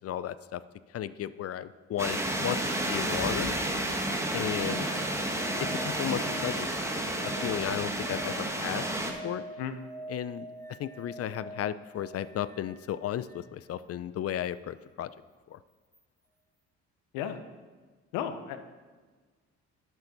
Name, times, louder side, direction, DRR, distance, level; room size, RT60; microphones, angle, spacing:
voice 1, 0.0-0.6 0.9-2.6 2.9-3.5 4.3-4.9 5.6-8.9 9.2-9.4 10.1-10.5 10.8-15.1 15.5-15.6, left 11 dB, 45° left, 16 dB, 0.5 m, -34 dB
sound 1, 2.0-9.1, right 1 dB, 10° right, 1.3 m, -31 dB
sound 2, 3.8-13.6 15.9-16.0, right 2 dB, 10° left, 1.0 m, -46 dB
voice 2, 18.1-18.6, left 9 dB, 90° left, 9 dB, 0.8 m, -33 dB
11.0 x 7.2 x 4.1 m, 1.4 s
supercardioid pair, 70°, 32 cm